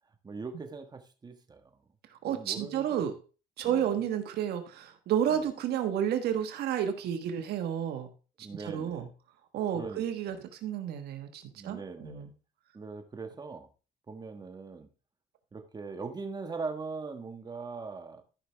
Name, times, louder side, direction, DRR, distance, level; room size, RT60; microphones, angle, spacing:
voice 1, 0.2-1.8 2.3-3.0 3.6-3.9 5.3-5.5 8.4-9.1 9.7-10.4 11.5-12.3 12.7-13.7 14.1-14.9 15.5-18.2, right 4 dB, 25° right, 6 dB, 1.4 m, -41 dB
voice 2, 2.1-3.1 3.6-8.1 8.6-9.1 9.5-12.3, right 9 dB, 70° right, 7 dB, 1.3 m, -31 dB
13.5 x 5.8 x 3.4 m, 0.34 s
cardioid pair, 110°, 17 cm